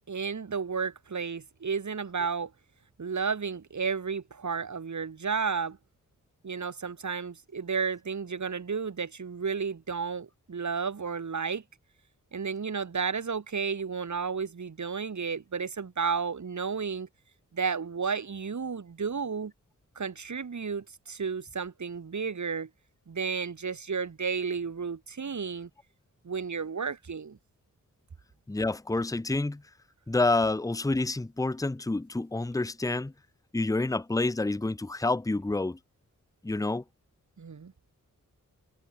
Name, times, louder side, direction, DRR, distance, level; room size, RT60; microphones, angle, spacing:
voice 1, 0.1-2.5 3.0-5.8 6.4-11.6 12.3-17.1 17.5-19.5 20.0-22.7 23.1-25.7 26.2-27.4 37.4-37.7, right 5 dB, 60° right, 5.5 m, -32 dB
voice 2, 28.5-29.6 30.1-33.1 33.5-35.8 36.4-36.8, left 2 dB, 10° left, 0.8 m, -28 dB
wide cardioid pair, 150°, 32 cm